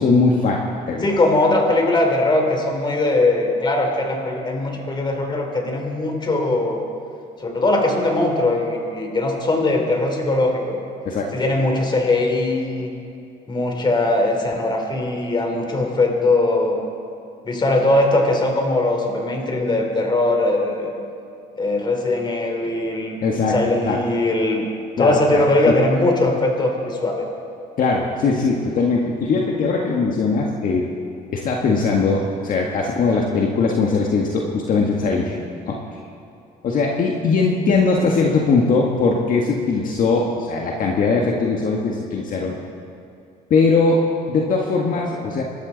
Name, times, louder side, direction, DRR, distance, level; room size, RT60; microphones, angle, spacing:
voice 1, 0.0-1.2 11.0-11.3 23.2-23.6 23.8-24.0 25.0-25.7 27.8-30.8 31.3-35.8 36.6-42.5 43.5-44.0 44.3-45.4, left 4 dB, 55° left, -1 dB, 1.7 m, -20 dB
voice 2, 1.0-6.8 7.4-10.8 11.3-12.9 13.5-16.8 17.4-20.9 21.6-23.2 23.5-24.6 25.0-27.3, left 2 dB, 25° left, 2 dB, 3.2 m, -20 dB
26.0 x 13.0 x 4.0 m, 2.6 s
cardioid pair, 110°, 17 cm